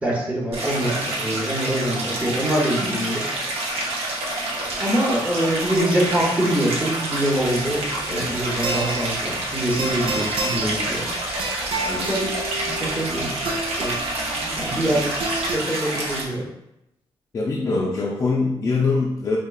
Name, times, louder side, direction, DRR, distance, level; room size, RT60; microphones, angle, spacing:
voice 1, 0.0-3.9 4.8-7.8 8.1-11.1 11.8-12.3 12.7-14.0 14.6-16.5, right 1 dB, 10° right, -4 dB, 0.7 m, -25 dB
Stream, 0.5-16.2, right 1 dB, 80° right, 0.8 m, -28 dB
sound 1, 7.3-15.6, right 2 dB, 60° right, 0.5 m, -31 dB
voice 2, 8.1-8.4 17.3-19.4, left 3 dB, 30° left, -2 dB, 0.3 m, -23 dB
4.3 x 2.7 x 2.3 m, 0.85 s
wide cardioid pair, 175°, 10 cm